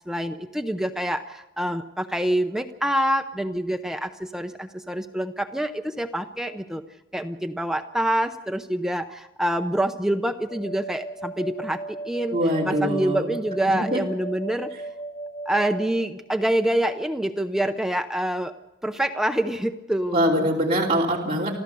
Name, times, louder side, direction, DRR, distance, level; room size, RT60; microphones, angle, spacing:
voice 1, 0.1-6.8 7.1-12.4 12.6-14.7 15.5-18.5 18.8-20.5, right 1 dB, 5° right, 6 dB, 0.6 m, -26 dB
sound 1, 10.4-15.8, right 2 dB, 55° left, 7.1 m, -36 dB
voice 2, 12.3-13.3 13.8-14.0 20.1-21.6, equal, 35° right, -4 dB, 3.1 m, -23 dB
27.0 x 14.5 x 6.8 m, 0.98 s
head